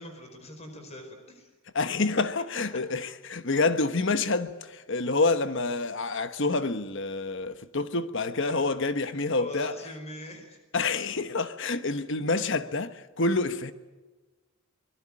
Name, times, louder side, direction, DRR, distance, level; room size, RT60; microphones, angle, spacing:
voice 1, 0.0-1.5 8.3-8.7 9.1-10.6, left 1 dB, 30° left, 4.7 m, -42 dB
voice 2, 1.7-9.7 10.7-13.7, left 3 dB, 55° left, 1.2 m, -27 dB
24.5 x 21.0 x 8.8 m
head